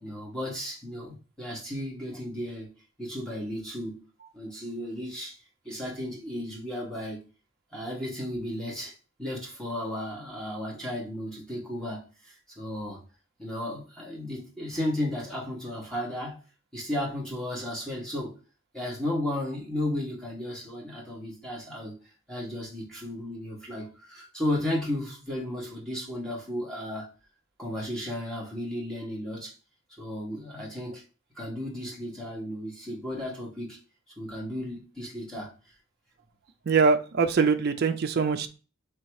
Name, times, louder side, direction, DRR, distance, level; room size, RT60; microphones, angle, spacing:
voice 1, 0.0-2.7 3.0-4.0 4.3-5.4 5.6-7.2 7.7-8.9 9.2-13.0 13.4-16.4 16.7-18.3 18.7-21.9 22.3-27.1 27.6-29.5 30.0-31.0 31.4-33.8 34.2-35.5, left 1 dB, 5° left, -5 dB, 1.2 m, -34 dB
voice 2, 36.7-38.5, right 5 dB, 50° right, 7 dB, 0.4 m, -23 dB
3.4 x 2.8 x 4.6 m, 0.35 s
head